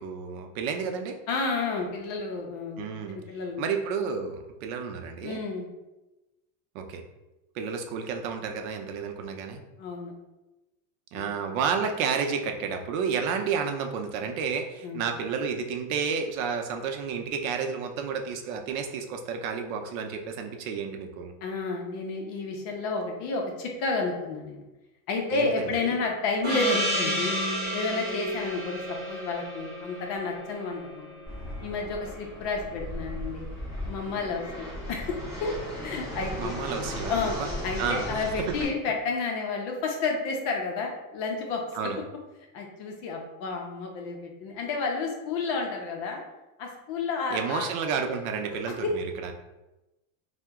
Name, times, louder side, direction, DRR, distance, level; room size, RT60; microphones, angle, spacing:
voice 1, 0.0-1.2 2.8-3.2 3.6-5.4 6.7-7.0 7.5-9.6 11.1-21.3 25.3-26.0 36.4-37.5 37.8-38.2 41.7-42.0 47.3-49.3, right 6 dB, 85° right, 5 dB, 0.6 m, -31 dB
voice 2, 1.3-2.8 3.1-3.7 5.2-5.7 9.8-10.1 11.1-11.3 14.8-15.0 21.4-24.6 25.1-27.4 27.7-28.8 29.1-31.1 31.6-33.5 33.9-35.5 35.8-36.6 37.1-37.3 37.6-41.9 42.5-46.2 46.6-47.7 48.8-48.9, left 4 dB, 40° left, 1 dB, 0.5 m, -31 dB
Gong, 26.4-31.5, equal, 25° right, 1.2 m, -31 dB
Fixed-wing aircraft airplane, 31.3-38.6, equal, 5° right, 1.4 m, -36 dB
2.8 x 2.1 x 3.5 m, 1.0 s
cardioid pair, 175°, 41 cm